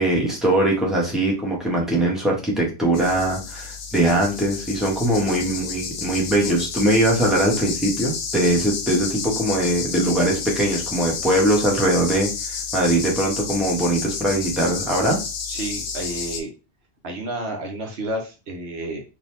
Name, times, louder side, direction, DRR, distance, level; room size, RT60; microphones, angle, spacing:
voice 1, 0.0-15.2, right 1 dB, ahead, -3 dB, 1.3 m, -21 dB
sound 1, 2.9-16.4, left 6 dB, 75° left, 1.0 m, -31 dB
voice 2, 15.4-16.5 17.0-19.0, right 1 dB, 70° right, 2 dB, 1.1 m, -31 dB
4.0 x 2.8 x 3.3 m, 0.31 s
omnidirectional pair, 1.1 m